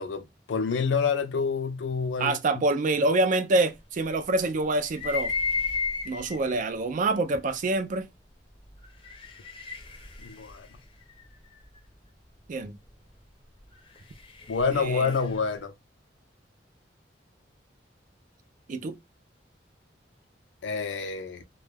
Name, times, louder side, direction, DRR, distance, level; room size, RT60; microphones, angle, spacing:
voice 1, 0.0-2.4 10.2-10.7 14.5-15.7 20.6-21.4, left 5 dB, 80° left, 0.4 m, -28 dB
voice 2, 2.2-5.3 6.1-8.1 12.5-12.8 14.7-15.1 18.7-18.9, right 2 dB, 45° right, 0.4 m, -26 dB
sound 1, 4.8-6.5 7.3-7.4 8.8-11.7 13.7-15.5, left 4 dB, 30° left, 0.6 m, -34 dB
2.2 x 2.1 x 3.2 m
head